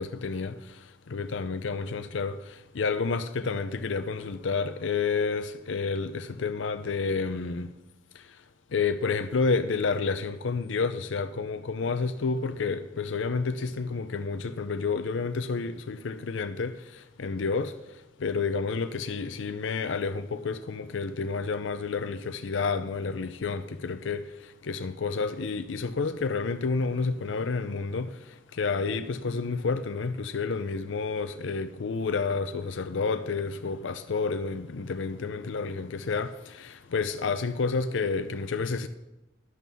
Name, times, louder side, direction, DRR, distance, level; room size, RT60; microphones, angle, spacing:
voice 1, 0.0-7.7 8.1-8.4 8.7-38.9, left 4 dB, 85° left, 0.5 m, -30 dB
11.0 x 6.2 x 6.9 m
head